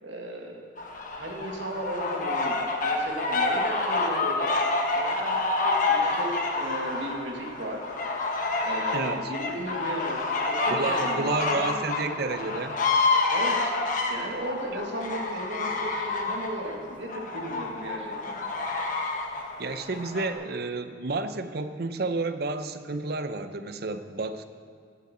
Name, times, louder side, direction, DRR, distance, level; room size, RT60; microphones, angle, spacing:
voice 1, 0.0-0.6 1.1-4.5 4.9-5.4 5.6-7.8 8.6-10.2 10.5-11.8 13.3-13.7 14.1-18.4, right 1 dB, 90° right, 0 dB, 1.9 m, -35 dB
sound 1, 0.8-20.3, left 3 dB, 45° left, 1.2 m, -28 dB
voice 2, 8.9-9.3 10.7-12.8 14.7-14.8 19.6-24.4, right 3 dB, 55° right, 10 dB, 0.6 m, -31 dB
17.0 x 8.2 x 4.3 m, 2.2 s
head